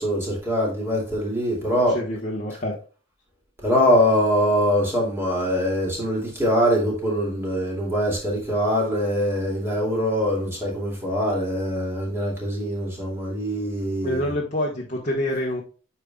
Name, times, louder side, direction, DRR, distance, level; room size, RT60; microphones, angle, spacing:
voice 1, 0.0-2.0 3.6-14.3, equal, 10° right, 2.4 m, -23 dB
voice 2, 1.9-2.8 14.0-15.6, left 1 dB, 35° left, 1.2 m, -26 dB
8.9 x 5.6 x 2.3 m
head